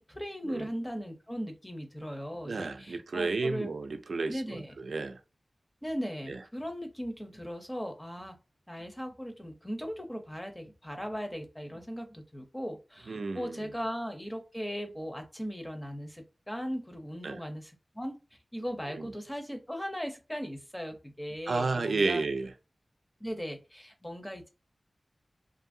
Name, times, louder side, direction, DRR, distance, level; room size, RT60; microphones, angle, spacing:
voice 1, 0.0-3.7 4.3-4.7 5.8-8.4 8.7-18.2 18.5-22.2 23.2-24.5, equal, 10° left, 0.6 m, -38 dB
voice 2, 2.5-5.2 6.3-6.4 13.1-13.7 17.2-17.4 18.9-19.1 21.5-22.5, right 3 dB, 90° right, 0.3 m, -32 dB
2.7 x 2.5 x 2.6 m
wide cardioid pair, 70°, 0 cm